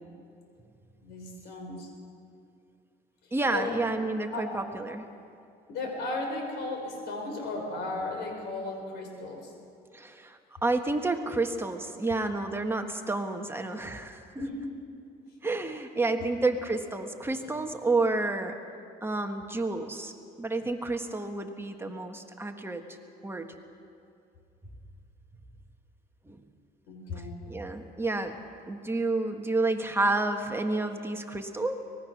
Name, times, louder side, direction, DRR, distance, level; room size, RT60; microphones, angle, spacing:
voice 1, 1.0-1.9 3.2-3.7 4.3-4.6 5.7-9.5 14.4-14.8 16.2-16.3 26.9-27.3, left 2 dB, 80° left, 3 dB, 5.1 m, -35 dB
voice 2, 3.3-5.1 9.9-14.2 15.4-18.6 19.0-23.0 23.2-23.5 26.3-26.4 27.5-31.8, right 2 dB, 15° right, 5 dB, 1.4 m, -30 dB
24.5 x 20.0 x 6.2 m, 2.5 s
cardioid pair, 110°, 17 cm